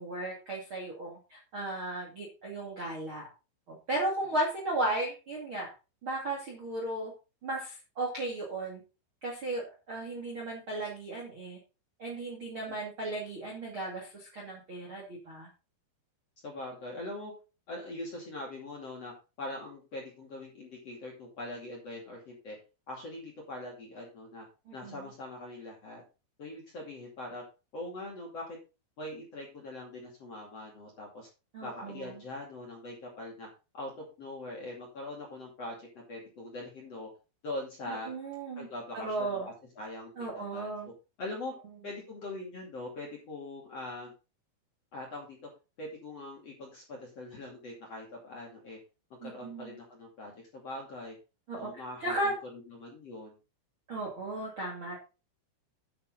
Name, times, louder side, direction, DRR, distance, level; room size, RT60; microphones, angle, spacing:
voice 1, 0.0-3.3 3.7-5.7 6.0-7.1 7.4-8.8 9.2-11.6 12.0-15.5 24.7-25.0 31.5-32.2 37.9-38.7 38.9-39.5 40.2-40.9 49.2-49.8 51.5-51.7 52.0-52.3 53.9-55.0, right 2 dB, 40° right, -1 dB, 2.0 m, -35 dB
voice 2, 16.4-17.3 17.7-22.6 22.9-24.4 24.7-26.0 26.4-27.4 27.7-28.6 29.0-31.3 31.6-33.5 33.7-37.1 37.4-38.1 38.6-40.7 41.2-41.5 41.8-44.1 44.9-45.4 45.8-48.8 49.2-51.2 51.6-53.4, left 2 dB, 40° left, -2 dB, 2.8 m, -42 dB
11.5 x 6.7 x 3.9 m, 0.31 s
omnidirectional pair, 5.9 m